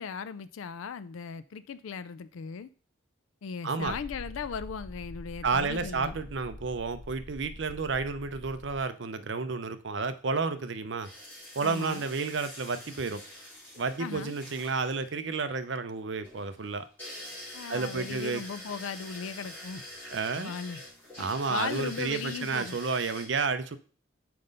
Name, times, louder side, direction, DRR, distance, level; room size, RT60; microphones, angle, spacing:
voice 1, 0.0-2.7 3.4-6.2 11.6-12.1 14.0-14.3 17.5-19.8 20.4-20.8 21.5-22.8, left 6 dB, 85° left, 0.4 m, -37 dB
voice 2, 3.6-3.9 5.4-11.1 11.6-13.2 13.8-16.9 17.7-18.4 20.1-20.5 21.2-23.8, right 4 dB, 65° right, 0.6 m, -31 dB
sound 1, 3.8-8.8, left 1 dB, 45° left, 0.6 m, -45 dB
sound 2, 11.0-23.2, left 1 dB, 10° left, 4.2 m, -46 dB
5.9 x 5.1 x 5.3 m
head